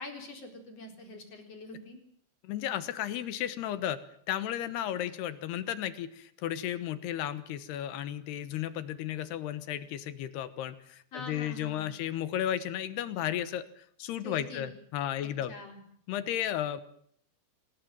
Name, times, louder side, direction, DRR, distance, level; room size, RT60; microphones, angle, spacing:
voice 1, 0.0-2.0 11.1-11.9 14.2-14.7 15.2-15.8, left 2 dB, 35° left, 4 dB, 4.8 m, -44 dB
voice 2, 2.4-4.0 4.3-15.5 16.1-16.8, left 11 dB, 75° left, 13 dB, 3.0 m, -34 dB
25.5 x 19.5 x 7.6 m, 0.64 s
omnidirectional pair, 5.2 m